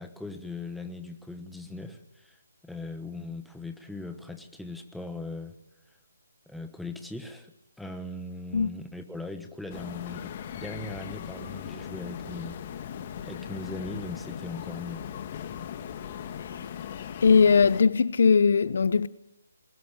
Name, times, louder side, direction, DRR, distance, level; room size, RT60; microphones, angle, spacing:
voice 1, 0.0-2.4 2.6-5.6 6.5-12.7 13.2-15.1, left 2 dB, ahead, 1.3 m, -39 dB
sound 1, 9.7-17.8, left 9 dB, 35° left, 1.8 m, -39 dB
voice 2, 17.2-19.1, left 5 dB, 60° left, 0.8 m, -20 dB
22.0 x 20.5 x 8.9 m
hypercardioid pair, 155°, 0 cm